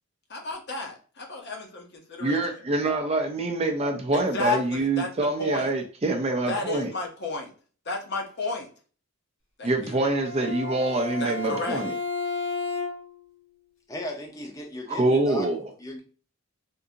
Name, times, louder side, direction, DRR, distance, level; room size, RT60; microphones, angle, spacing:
voice 1, 0.3-2.6 4.1-5.1 5.4-5.7 6.5-7.5 7.8-8.7 9.6-10.0 11.2-11.8, left 2 dB, 50° left, 1 dB, 0.8 m, -32 dB
voice 2, 2.2-6.9 9.6-11.9 14.9-15.6, right 2 dB, 30° right, 4 dB, 0.4 m, -25 dB
Bowed string instrument, 9.9-13.3, left 3 dB, 70° left, 1.3 m, -33 dB
voice 3, 13.9-15.5 15.8-16.0, left 1 dB, 15° left, 1 dB, 0.6 m, -36 dB
3.6 x 2.6 x 2.7 m, 0.39 s
head